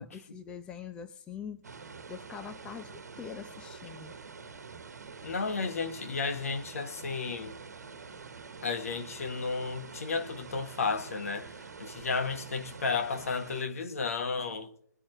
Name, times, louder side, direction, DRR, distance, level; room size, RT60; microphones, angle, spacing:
voice 1, 0.0-1.6 2.1-4.1, left 7 dB, 10° left, 0.6 m, -43 dB
sound 1, 1.6-13.6, right 5 dB, 65° right, 1.4 m, -46 dB
voice 2, 5.2-7.6 8.6-11.5 11.8-14.7, left 4 dB, 55° left, 1.6 m, -33 dB
22.0 x 8.7 x 3.2 m
figure-of-eight pair, 140°, 9 cm